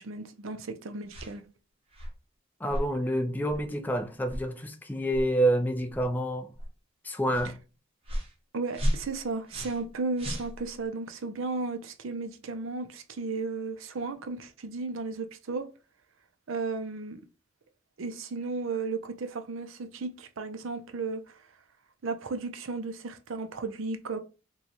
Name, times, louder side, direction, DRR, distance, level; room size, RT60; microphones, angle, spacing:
voice 1, 0.0-1.4 8.5-15.7 16.5-17.2 18.0-21.5 22.0-24.2, right 4 dB, 70° right, 0.5 m, -34 dB
sound 1, 1.1-1.4 1.9-2.2 2.7-2.9 3.5-3.7 4.2-4.5 5.1-5.3 5.9-6.1 6.5-6.7 7.3-7.5 8.0-8.3 8.7-9.9 10.2-10.9, equal, 30° right, 0.8 m, -33 dB
voice 2, 2.6-6.5 7.0-7.5, right 1 dB, 10° left, 0.3 m, -28 dB
3.0 x 2.3 x 4.0 m
head